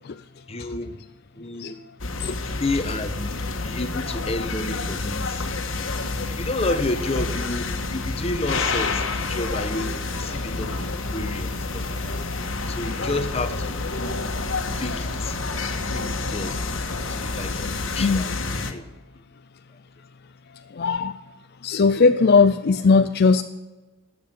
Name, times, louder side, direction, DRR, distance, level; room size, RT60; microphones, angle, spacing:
voice 1, 0.5-1.0 1.3-1.8 2.6-3.4 3.6-5.5 6.3-12.2 12.7-13.8 14.7-15.4 15.9-16.6 17.1-18.8, left 2 dB, 30° left, 1.1 m, -30 dB
sound 1, 2.0-18.7, left 3 dB, 75° left, 1.5 m, -28 dB
voice 2, 20.7-21.2 21.6-23.4, left 4 dB, 55° left, 0.5 m, -18 dB
13.0 x 7.9 x 9.0 m
head